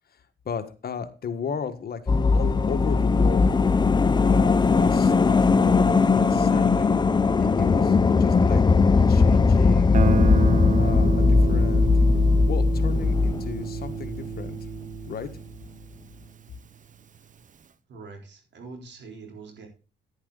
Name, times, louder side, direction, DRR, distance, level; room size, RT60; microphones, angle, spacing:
voice 1, 0.4-2.0 2.3-3.5 4.2-7.0 7.4-8.6 9.1-10.0 10.8-11.9 12.3-14.6 15.1-15.3, left 6 dB, 50° left, 8 dB, 1.6 m, -35 dB
sound 1, 2.1-14.5 14.8-14.9, left 4 dB, 20° left, 0.6 m, -19 dB
Guitar, 9.9-16.7, right 7 dB, 40° right, 0.8 m, -31 dB
voice 2, 17.9-19.7, right 4 dB, 65° right, 3 dB, 3.9 m, -43 dB
10.5 x 10.0 x 4.0 m, 0.34 s
cardioid pair, 90°, 20 cm